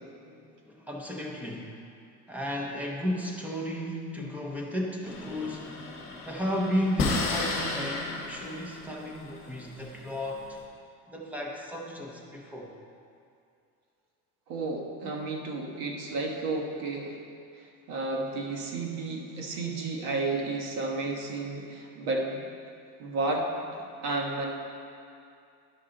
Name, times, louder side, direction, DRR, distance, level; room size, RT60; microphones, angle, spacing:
voice 1, 0.0-1.8 2.3-5.8 6.3-10.6 11.1-12.7 23.8-24.0, equal, 5° right, -1 dB, 0.6 m, -34 dB
sound 1, 5.1-10.6, left 3 dB, 30° left, 1.3 m, -34 dB
voice 2, 14.5-17.2 17.9-22.5 23.0-23.5 24.0-24.5, right 3 dB, 65° right, 0 dB, 1.3 m, -32 dB
11.0 x 5.5 x 3.8 m, 2.4 s
cardioid pair, 165°, 40 cm